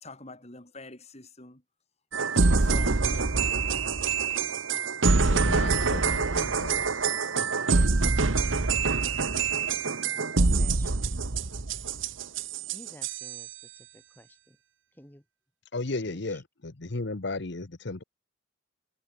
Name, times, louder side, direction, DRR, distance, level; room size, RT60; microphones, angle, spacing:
voice 1, 0.0-1.6 2.4-3.6, left 2 dB, 35° left, 3.5 m, -46 dB
sound 1, 2.1-13.5, right 4 dB, 80° right, 1.2 m, -25 dB
voice 2, 5.2-7.1 15.7-18.0, left 2 dB, 60° left, 1.1 m, -35 dB
voice 3, 10.3-11.0 12.7-14.6 14.9-15.2 16.1-16.4, equal, 10° left, 3.2 m, -52 dB
head